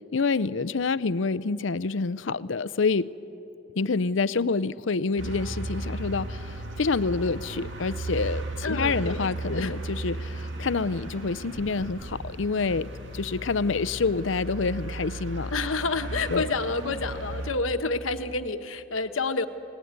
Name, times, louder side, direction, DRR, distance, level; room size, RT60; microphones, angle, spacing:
voice 1, 0.0-3.1 3.8-15.5 16.3-16.5, left 4 dB, 65° left, 17 dB, 0.6 m, -27 dB
sound 1, 5.2-17.5, right 2 dB, 65° right, 2.5 m, -35 dB
voice 2, 8.6-9.7 15.5-19.5, left 3 dB, 85° left, 8 dB, 1.2 m, -29 dB
30.0 x 18.5 x 9.5 m, 3.0 s
head